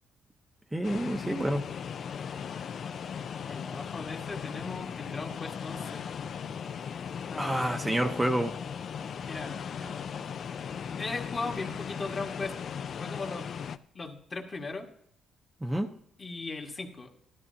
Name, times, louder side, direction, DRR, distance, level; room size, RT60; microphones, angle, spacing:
voice 1, 0.7-1.6 7.4-8.5 15.6-15.9, right 1 dB, 10° right, 3 dB, 0.7 m, -28 dB
sound 1, 0.8-13.8, left 7 dB, 60° left, 0.4 m, -38 dB
voice 2, 3.4-6.1 7.3-7.9 9.2-10.0 11.0-12.6 13.0-13.5 13.9-14.9 16.2-17.1, left 3 dB, 35° left, 2 dB, 1.7 m, -38 dB
13.0 x 12.5 x 2.8 m, 0.70 s
cardioid pair, 90°, 0 cm